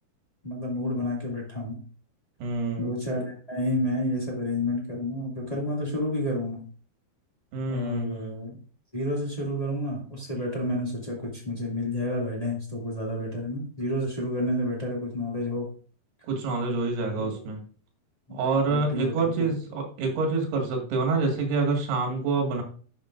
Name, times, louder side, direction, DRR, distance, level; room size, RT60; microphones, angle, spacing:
voice 1, 0.4-1.8 2.8-6.6 7.7-8.6 8.9-15.7 18.3-18.4 18.7-19.5, left 1 dB, 20° left, -3 dB, 1.1 m, -30 dB
voice 2, 2.4-2.9 7.5-8.1 16.3-17.6 18.3-22.6, right 3 dB, 75° right, 1 dB, 3.8 m, -27 dB
11.5 x 7.1 x 2.5 m, 0.41 s
omnidirectional pair, 4.7 m